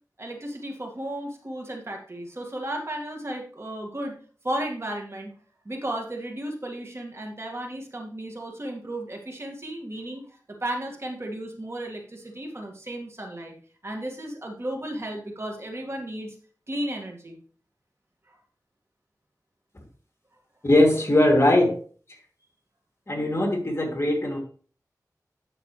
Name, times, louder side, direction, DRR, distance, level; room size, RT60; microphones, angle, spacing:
voice 1, 0.2-4.2 4.4-5.3 5.7-10.2 10.6-13.5 13.8-16.4 16.7-17.4, right 1 dB, 40° right, 1 dB, 2.1 m, -34 dB
voice 2, 20.6-21.8 23.1-24.4, left 1 dB, 40° left, 1 dB, 2.8 m, -20 dB
9.6 x 6.7 x 3.3 m, 0.42 s
wide cardioid pair, 65°, 7 cm